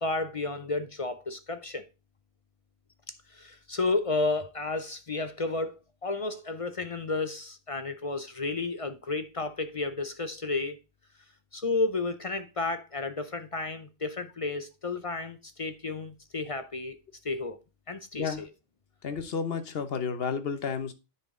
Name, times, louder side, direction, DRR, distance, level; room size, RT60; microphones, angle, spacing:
voice 1, 0.0-1.8 3.3-10.8 11.5-17.0 17.2-17.6 17.9-18.5, left 3 dB, 40° left, 0.5 m, -32 dB
voice 2, 18.1-18.4 19.0-20.9, left 6 dB, 55° left, 1.2 m, -31 dB
10.0 x 4.4 x 3.7 m
omnidirectional pair, 1.2 m